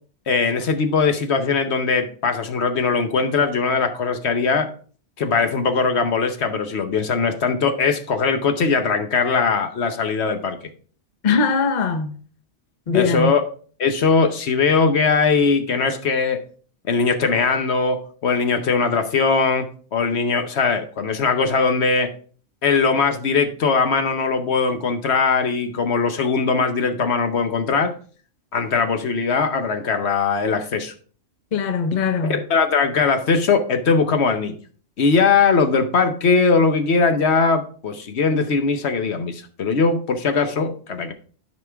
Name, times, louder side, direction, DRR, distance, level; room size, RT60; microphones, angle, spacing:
voice 1, 0.3-4.7 5.2-10.6 12.9-13.4 13.8-16.4 16.9-22.1 22.6-27.9 28.5-30.9 32.2-34.6 35.0-41.1, left 4 dB, 65° left, 1.1 m, -20 dB
voice 2, 11.2-12.1 12.9-13.3 31.5-32.4, left 5 dB, 45° left, 0.8 m, -20 dB
13.0 x 5.2 x 3.4 m
omnidirectional pair, 1.2 m